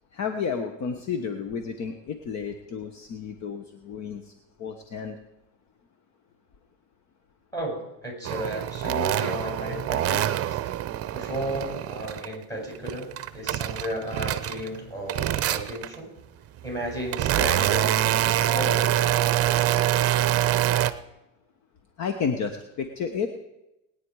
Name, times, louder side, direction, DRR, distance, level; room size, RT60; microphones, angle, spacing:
voice 1, 0.1-4.3 4.6-5.2 22.0-23.3, left 6 dB, 45° left, 7 dB, 1.3 m, -31 dB
voice 2, 7.5-10.6 11.1-16.1 16.6-18.9, right 1 dB, 10° left, -1 dB, 7.0 m, -34 dB
sound 1, 8.2-12.3 12.7-14.8 15.1-16.0 16.6-20.9, right 12 dB, 40° right, 0.8 m, -25 dB
20.5 x 9.8 x 4.8 m, 0.91 s
supercardioid pair, 105°, 38 cm